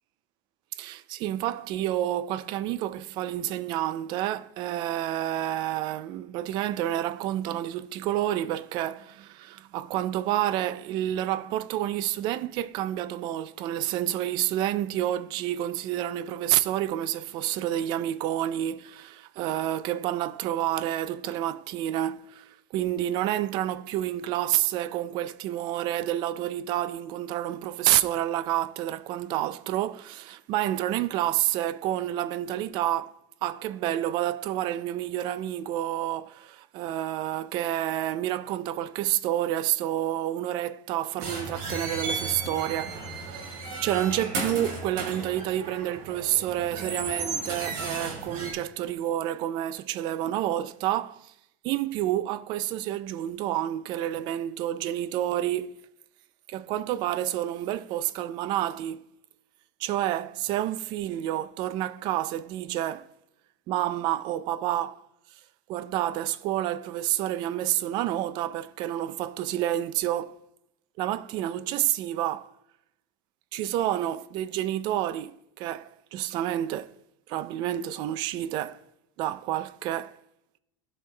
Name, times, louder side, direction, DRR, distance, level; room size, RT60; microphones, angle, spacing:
voice 1, 0.7-51.3 51.6-55.7 56.5-59.0 59.8-63.1 63.7-65.0 65.7-70.4 71.0-72.5 73.5-77.0 77.3-78.8 79.2-80.2, right 13 dB, 50° right, 0.4 m, -29 dB
sound 1, 41.2-48.5, right 3 dB, 80° right, 2.4 m, -34 dB
15.5 x 5.4 x 2.2 m
supercardioid pair, 145°, 10 cm